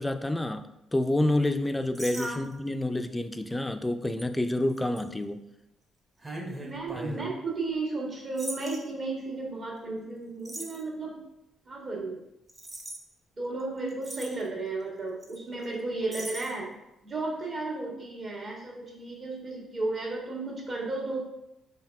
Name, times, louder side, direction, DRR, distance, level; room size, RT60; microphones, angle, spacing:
voice 1, 0.0-5.4 7.0-7.3, left 1 dB, 10° left, 9 dB, 0.3 m, -28 dB
sound 1, 1.9-2.7 3.3-3.5 4.2-4.3 4.8-5.0 6.2-7.3 8.4-8.8 10.4-10.8 12.5-13.0 13.6-13.7 13.9-14.4 15.2-15.4 15.6-15.7 16.1-16.5, right 1 dB, 20° right, 0.8 m, -39 dB
voice 2, 2.1-2.4 6.6-11.2 11.6-12.2 13.4-16.7 17.0-21.2, right 3 dB, 45° right, -3 dB, 1.6 m, -34 dB
4.5 x 3.3 x 3.4 m, 0.86 s
cardioid pair, 90°, 0 cm